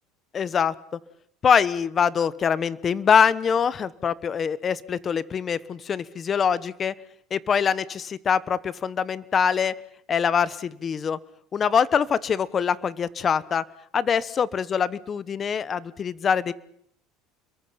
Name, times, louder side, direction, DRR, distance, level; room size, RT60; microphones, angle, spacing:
voice 1, 0.3-0.7 1.4-6.9 7.3-9.7 10.1-11.2 11.5-13.6 13.9-16.5, left 7 dB, 30° left, 17 dB, 1.1 m, -24 dB
30.0 x 22.5 x 5.8 m, 0.68 s
supercardioid pair, 130°, 0 cm